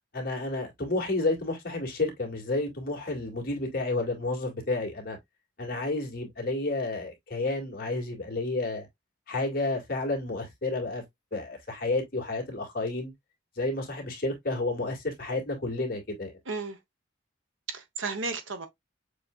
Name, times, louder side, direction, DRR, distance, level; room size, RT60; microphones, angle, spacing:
voice 1, 0.1-5.2 5.6-8.9 9.3-11.0 11.3-13.1 13.6-16.3, left 2 dB, 50° left, 2.1 m, -31 dB
voice 2, 16.5-16.8 17.7-18.7, right 4 dB, 80° right, 1.3 m, -33 dB
6.7 x 3.3 x 2.4 m
head